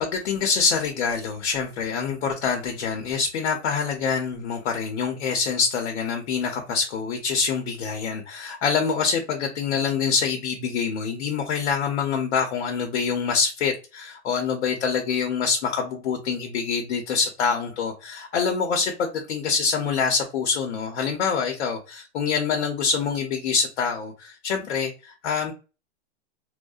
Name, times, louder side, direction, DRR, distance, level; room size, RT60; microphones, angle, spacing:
voice 1, 0.0-25.5, left 5 dB, 75° left, 2 dB, 0.7 m, -25 dB
2.6 x 2.1 x 2.3 m, 0.31 s
hypercardioid pair, 120°, 33 cm